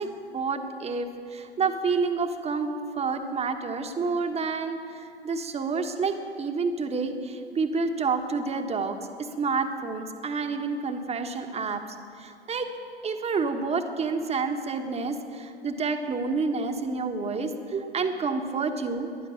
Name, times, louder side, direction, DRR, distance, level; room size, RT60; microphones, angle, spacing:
voice 1, 0.0-11.8 12.2-12.7 13.0-19.1, right 4 dB, 20° right, 5 dB, 1.5 m, -29 dB
20.0 x 11.5 x 5.8 m, 2.6 s
figure-of-eight pair, 90°, 31 cm